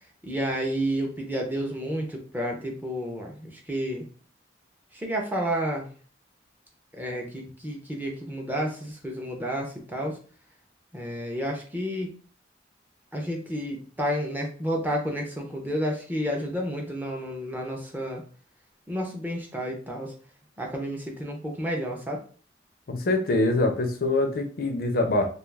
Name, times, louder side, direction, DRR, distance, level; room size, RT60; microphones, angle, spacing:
voice 1, 0.2-4.1 4.9-5.9 6.9-10.2 10.9-12.1 13.1-18.2 18.9-20.1 20.6-22.2, equal, 10° right, 0 dB, 0.5 m, -30 dB
voice 2, 22.9-25.3, left 2 dB, 50° left, 5 dB, 0.4 m, -24 dB
2.3 x 2.3 x 3.2 m, 0.41 s
head